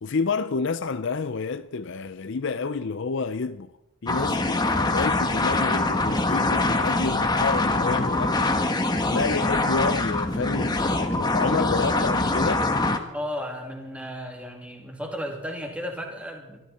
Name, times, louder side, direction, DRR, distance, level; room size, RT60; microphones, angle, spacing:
voice 1, 0.0-3.7 4.0-8.4 9.1-12.7, left 4 dB, 55° left, 0.5 m, -29 dB
sound 1, 4.1-13.0, left 2 dB, 20° left, 1.2 m, -24 dB
voice 2, 13.1-16.6, equal, 5° right, 2.8 m, -34 dB
23.0 x 14.5 x 4.3 m
head